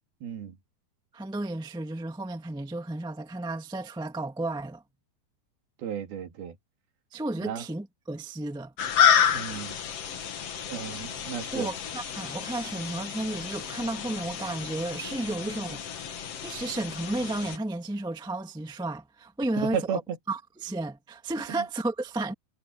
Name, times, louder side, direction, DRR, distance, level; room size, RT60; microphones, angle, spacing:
voice 1, 0.2-0.6 5.8-6.6 7.4-7.6 9.3-9.8 10.7-11.7 19.6-20.2 21.5-21.6, right 8 dB, 80° right, 4.3 m, -34 dB
voice 2, 1.1-4.8 7.1-8.7 11.5-15.8 16.2-20.0 20.3-22.3, right 2 dB, 5° right, 0.6 m, -33 dB
sound 1, 8.8-17.6, left 8 dB, 50° left, 2.1 m, -29 dB
omnidirectional pair, 4.3 m